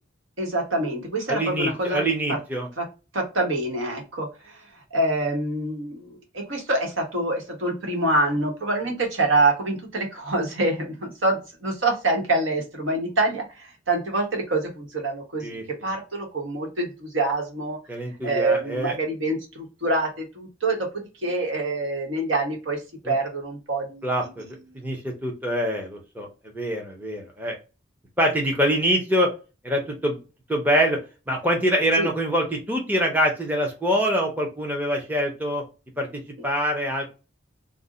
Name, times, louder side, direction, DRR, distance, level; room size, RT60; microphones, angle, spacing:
voice 1, 0.4-2.4 2.8-2.9 3.1-4.6 4.9-17.8 18.2-24.8 32.0-32.1, right 2 dB, 85° right, 1 dB, 1.1 m, -26 dB
voice 2, 1.3-2.7 15.4-15.6 17.9-19.0 23.0-23.1 24.0-26.3 26.5-27.5 28.2-29.3 29.6-30.2 30.5-31.0 31.3-35.6 36.0-37.1, equal, 10° right, 0 dB, 0.5 m, -25 dB
2.5 x 2.0 x 3.7 m, 0.31 s
head